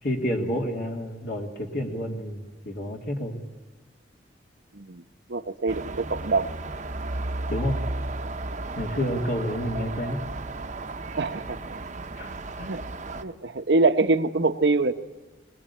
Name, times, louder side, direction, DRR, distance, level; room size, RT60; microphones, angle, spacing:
voice 1, 0.0-3.4 7.5-7.8 8.8-10.2 12.2-12.7, equal, 60° left, 1 dB, 2.7 m, -29 dB
voice 2, 5.3-6.5 11.2-11.6 12.7-12.8 13.2-14.9, right 3 dB, 75° right, 8 dB, 1.0 m, -24 dB
sound 1, 5.7-13.2, right 2 dB, 45° right, 0.9 m, -34 dB
22.0 x 20.0 x 8.5 m, 1.2 s
head